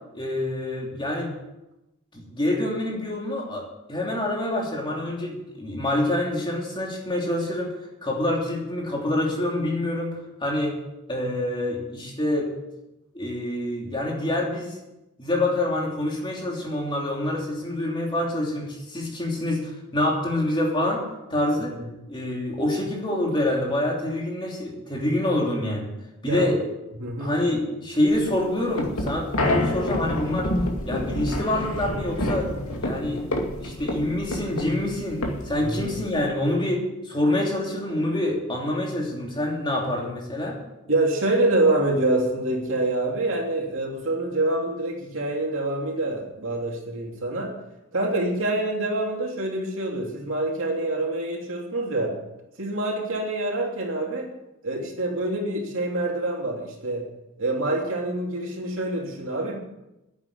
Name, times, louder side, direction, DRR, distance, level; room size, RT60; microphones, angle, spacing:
voice 1, 0.1-1.4 2.1-10.8 11.1-12.5 13.1-14.8 15.2-21.0 21.3-21.7 22.1-25.9 26.2-26.6 27.2-30.5 30.9-32.5 32.8-33.2 33.6-40.6, left 1 dB, 20° left, -1 dB, 3.1 m, -26 dB
voice 2, 27.0-27.3 35.6-35.9 40.9-47.5 47.9-52.1 52.6-54.3 54.6-57.0 57.4-59.6, right 2 dB, 60° right, 0 dB, 3.0 m, -26 dB
sound 1, 28.1-36.3, left 1 dB, 70° left, 2.4 m, -28 dB
10.5 x 8.6 x 9.8 m, 0.95 s
head